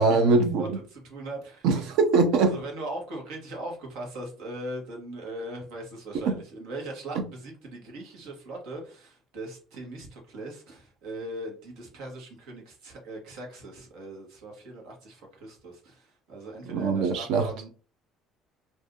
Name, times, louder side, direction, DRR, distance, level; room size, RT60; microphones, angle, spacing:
voice 1, 0.0-0.8 1.6-2.6 6.3-6.4 16.7-17.5, right 4 dB, 65° right, 0.6 m, -22 dB
voice 2, 0.6-1.7 2.4-17.7, right 1 dB, 85° right, 1.4 m, -39 dB
2.6 x 2.6 x 3.6 m
cardioid pair, 170°, 0 cm